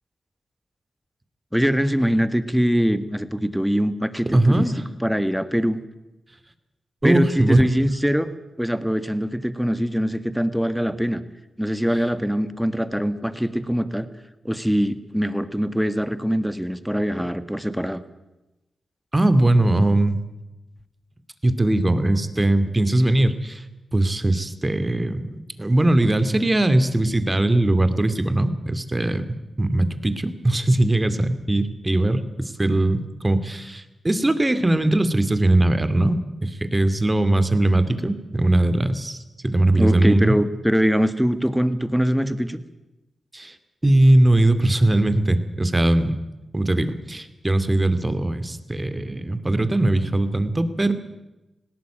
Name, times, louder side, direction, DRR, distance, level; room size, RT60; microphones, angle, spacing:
voice 1, 1.5-4.7 5.0-5.8 7.0-11.2 11.6-14.1 14.4-18.0 39.8-42.6, equal, ahead, 12 dB, 1.9 m, -23 dB
voice 2, 4.3-4.8 7.0-7.7 19.1-20.2 21.4-23.6 23.9-39.2 39.4-40.4 43.3-43.5 43.8-46.2 46.5-50.9, right 1 dB, 25° right, 11 dB, 2.5 m, -20 dB
19.5 x 17.0 x 9.0 m, 1.0 s
supercardioid pair, 40°, 0 cm